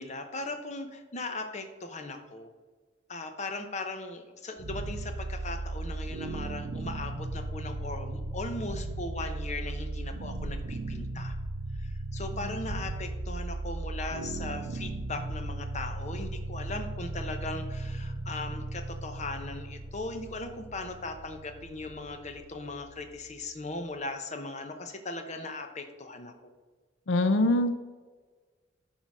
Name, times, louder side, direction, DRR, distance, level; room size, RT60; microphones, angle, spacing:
voice 1, 0.0-2.5 3.1-11.3 11.8-26.5, left 2 dB, 35° left, 6 dB, 0.9 m, -38 dB
sound 1, 4.6-23.6, right 2 dB, 90° right, 0.7 m, -37 dB
voice 2, 27.1-27.8, left 1 dB, 75° left, 9 dB, 0.6 m, -23 dB
10.5 x 3.9 x 6.1 m, 1.4 s
head